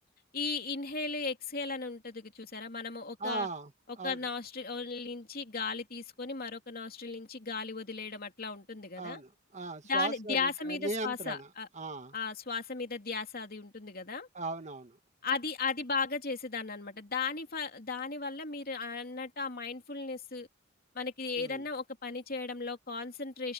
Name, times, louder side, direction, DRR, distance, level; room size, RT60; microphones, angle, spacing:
voice 1, 0.3-3.5 4.0-9.2 9.9-11.7 12.1-14.3 15.2-20.5 20.9-23.5, left 4 dB, 45° left, 3.1 m, -36 dB
voice 2, 3.2-3.7 4.0-4.2 9.0-11.5 11.7-12.1 14.3-15.0 21.4-21.6, right 3 dB, 35° right, 1.6 m, -38 dB
head